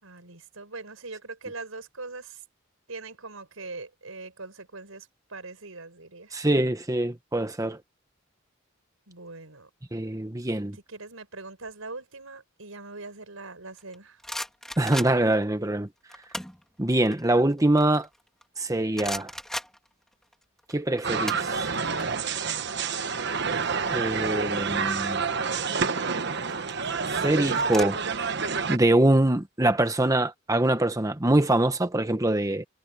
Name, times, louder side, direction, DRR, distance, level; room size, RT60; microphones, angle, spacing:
voice 1, 0.0-2.4 2.9-6.4 9.1-9.7 10.7-14.2, right 3 dB, 90° right, 5.4 m, -41 dB
voice 2, 6.3-7.8 9.9-10.8 14.8-15.9 16.8-18.1 18.6-19.3 20.7-21.7 23.9-25.2 27.2-28.0 28.7-32.6, right 1 dB, 15° right, 1.0 m, -24 dB
sound 1, 13.8-15.4 16.1-16.6 17.0-18.6 18.9-20.3 20.6-22.1 22.3-22.5 22.8-24.3 25.3-25.7 26.4-27.8, equal, ahead, 3.3 m, -37 dB
sound 2, 21.0-28.8, right 5 dB, 55° right, 1.2 m, -28 dB
head